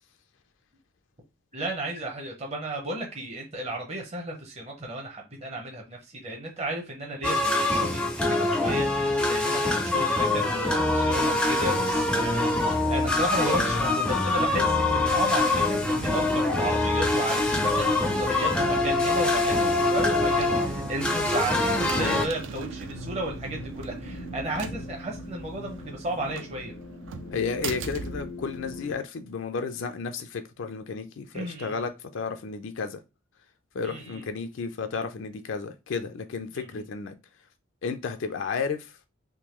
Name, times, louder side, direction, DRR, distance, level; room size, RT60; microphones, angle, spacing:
voice 1, 1.5-26.7 31.3-31.8 33.8-34.2 36.5-36.9, right 1 dB, 30° right, 0.7 m, -34 dB
sound 1, 7.2-22.3, left 2 dB, 5° left, 0.4 m, -24 dB
sound 2, 10.9-29.0, right 4 dB, 70° right, 0.4 m, -40 dB
voice 2, 21.9-22.3 27.3-33.0 33.7-37.1 37.8-39.0, left 5 dB, 70° left, 0.4 m, -32 dB
sound 3, 22.0-29.0, left 2 dB, 85° left, 0.9 m, -41 dB
3.6 x 2.6 x 3.0 m
head